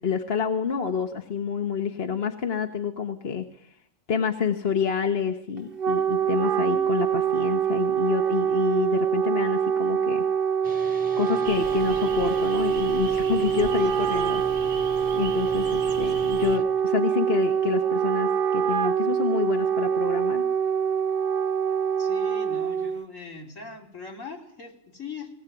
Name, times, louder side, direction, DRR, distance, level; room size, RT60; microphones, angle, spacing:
voice 1, 0.0-3.7 4.1-10.2 11.2-14.4 15.1-20.4, left 7 dB, 50° left, 5 dB, 1.5 m, -28 dB
Wind instrument woodwind instrument, 5.6-23.0, right 8 dB, 45° right, 1.5 m, -25 dB
sound 1, 10.6-16.6, left 2 dB, 5° right, 1.2 m, -42 dB
sound 2, 11.4-16.6, right 5 dB, 65° right, 1.6 m, -39 dB
voice 2, 22.0-25.3, left 4 dB, 70° left, 1 dB, 4.2 m, -40 dB
19.5 x 19.5 x 9.3 m, 0.68 s
omnidirectional pair, 1.4 m